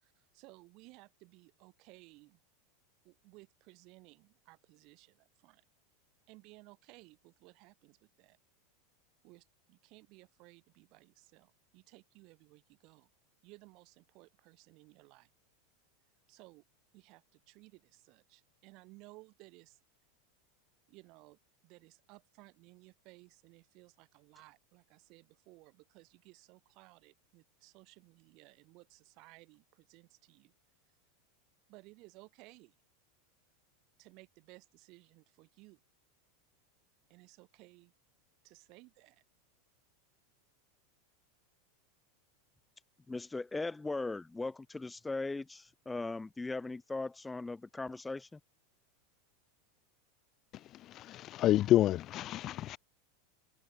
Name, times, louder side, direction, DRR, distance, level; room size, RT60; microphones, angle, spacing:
voice 1, 0.0-2.4 3.0-5.6 6.3-8.4 9.2-13.1 13.4-15.3 16.3-16.6 16.9-19.8 20.9-30.5 31.7-32.7 34.0-35.8 37.1-37.9 38.4-39.2, right 24 dB, 50° right, 8.0 m, -59 dB
voice 2, 43.1-48.4, left 3 dB, 10° left, 1.5 m, -39 dB
voice 3, 51.4-52.8, left 13 dB, 40° left, 0.5 m, -27 dB
hypercardioid pair, 90°, 0 cm